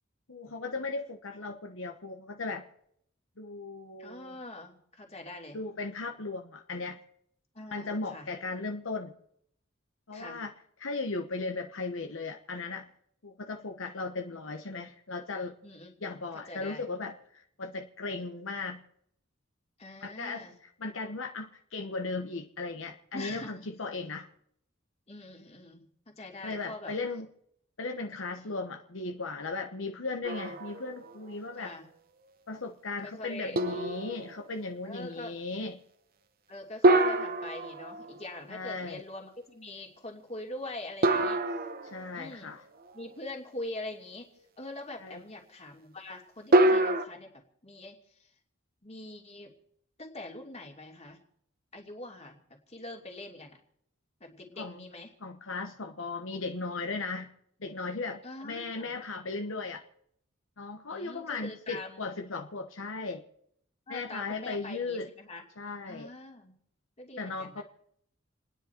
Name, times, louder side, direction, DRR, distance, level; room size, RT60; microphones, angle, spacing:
voice 1, 0.3-2.6 3.4-4.3 5.5-7.0 7.7-9.1 10.1-10.5 10.8-12.9 13.2-15.5 16.0-18.8 20.0-20.5 20.8-24.3 26.4-27.3 27.8-31.7 32.5-35.8 38.5-39.0 41.8-42.6 45.0-45.2 54.6-54.8 55.2-57.3 57.6-59.8 60.6-63.2 63.9-65.1 65.6-66.1 67.2-67.6, left 3 dB, 75° left, 3 dB, 1.2 m, -37 dB
voice 2, 4.0-5.6 7.5-8.3 10.1-10.4 15.6-16.9 19.8-20.5 23.1-23.5 25.1-26.9 28.4-28.6 30.5-30.6 31.5-31.9 33.0-33.6 34.8-35.4 36.5-41.4 42.1-42.5 42.9-44.3 44.6-48.3 48.8-49.5 50.0-51.2 51.7-52.4 52.7-53.6 54.2-55.1 58.2-59.0 60.9-62.1 63.9-65.4 65.8-66.5 67.0-67.6, left 2 dB, 35° left, 1 dB, 2.9 m, -43 dB
sound 1, 30.2-31.1 31.6-31.7 33.6-34.5 36.8-38.4 41.0-42.4 46.5-47.0, right 1 dB, 50° right, 1.0 m, -26 dB
29.0 x 10.0 x 4.5 m, 0.71 s
head